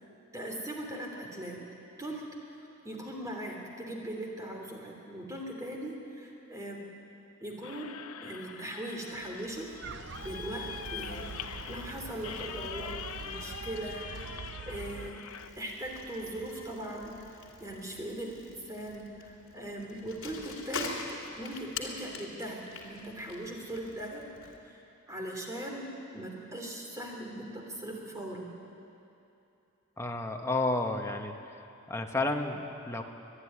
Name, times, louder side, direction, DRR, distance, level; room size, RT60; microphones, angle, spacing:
voice 1, 0.3-1.6 2.0-2.3 2.8-6.8 7.4-7.9 8.2-9.7 10.2-11.3 11.7-13.0 13.2-14.3 14.6-15.2 15.6-20.9 21.4-24.3 24.6-24.8 25.1-28.5, right 1 dB, 15° right, -1 dB, 3.1 m, -39 dB
sound 1, 7.6-15.5, left 7 dB, 90° left, 0.8 m, -43 dB
Bicycle, 9.1-24.6, left 4 dB, 65° left, 3.0 m, -46 dB
sound 2, 9.8-15.1, right 5 dB, 55° right, 0.6 m, -44 dB
voice 2, 30.0-31.4 31.9-33.0, left 2 dB, 15° left, 2 dB, 1.2 m, -31 dB
24.5 x 11.5 x 9.9 m, 2.8 s
head